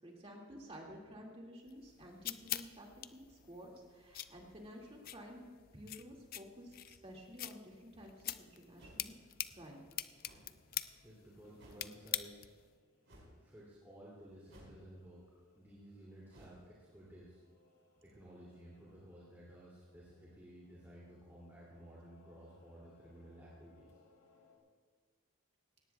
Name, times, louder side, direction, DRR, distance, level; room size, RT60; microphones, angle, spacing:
voice 1, 0.0-5.4 5.7-9.1 9.5-9.9, equal, 30° right, -1 dB, 2.2 m, -52 dB
sound 1, 1.7-12.7, left 13 dB, 45° left, 0.4 m, -45 dB
sound 2, 7.9-24.6, left 3 dB, 75° left, 2.9 m, -70 dB
sound 3, 8.8-9.2 10.2-10.5 11.6-11.9 13.0-13.4 14.5-15.0 16.3-16.6, equal, 65° right, 4.9 m, -58 dB
voice 2, 11.0-12.5 13.4-15.2 15.5-17.4 18.0-24.0, right 1 dB, 10° right, -8 dB, 2.7 m, -55 dB
17.5 x 17.5 x 2.3 m, 1.5 s
head